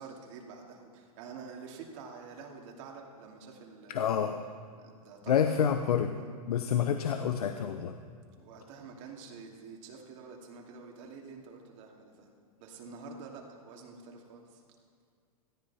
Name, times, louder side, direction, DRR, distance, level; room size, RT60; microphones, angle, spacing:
voice 1, 0.0-4.3 4.7-5.5 5.9-6.3 8.4-12.3 12.6-14.6, right 5 dB, 55° right, 0 dB, 2.8 m, -48 dB
voice 2, 3.9-4.4 5.3-6.1 6.5-7.9, left 8 dB, 80° left, 7 dB, 0.8 m, -28 dB
17.5 x 13.0 x 4.3 m, 2.2 s
hypercardioid pair, 115°, 19 cm